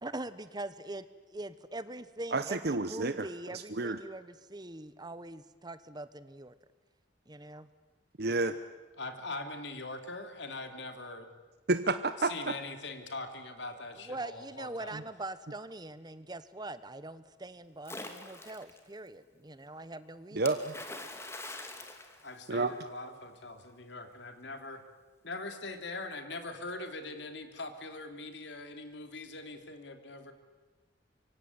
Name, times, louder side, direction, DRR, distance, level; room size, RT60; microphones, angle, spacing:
voice 1, 0.0-6.5 7.3-7.7 14.0-20.4, right 2 dB, 20° right, 14 dB, 1.1 m, -43 dB
voice 2, 2.3-4.0 8.2-8.5 11.7-12.5 20.3-20.8 22.5-22.7, right 3 dB, 55° right, 10 dB, 0.9 m, -30 dB
voice 3, 9.0-11.3 12.2-15.0 22.2-24.8 25.2-30.3, left 2 dB, 70° left, 7 dB, 3.0 m, -42 dB
Splash splatter, 17.8-18.8 20.5-22.9, left 2 dB, 15° left, 2.6 m, -44 dB
25.5 x 24.0 x 9.6 m, 1.2 s
head